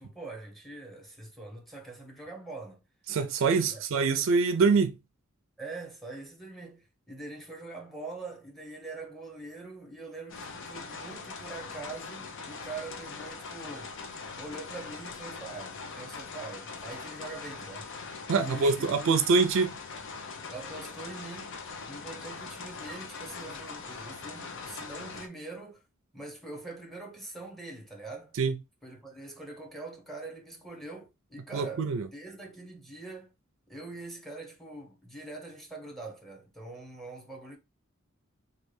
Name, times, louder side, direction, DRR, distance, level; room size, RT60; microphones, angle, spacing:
voice 1, 0.0-2.8 3.7-3.8 5.6-13.9 14.3-17.9 18.3-19.2 20.5-21.5 21.9-25.8 26.1-28.3 28.8-33.3 33.7-37.6, right 3 dB, ahead, 0.9 m, -43 dB
voice 2, 3.1-5.0 18.3-19.7 28.4-28.6 31.5-32.1, right 4 dB, 65° right, 0.4 m, -24 dB
sound 1, 10.3-25.3, left 4 dB, 60° left, 0.6 m, -42 dB
3.2 x 2.3 x 3.2 m
head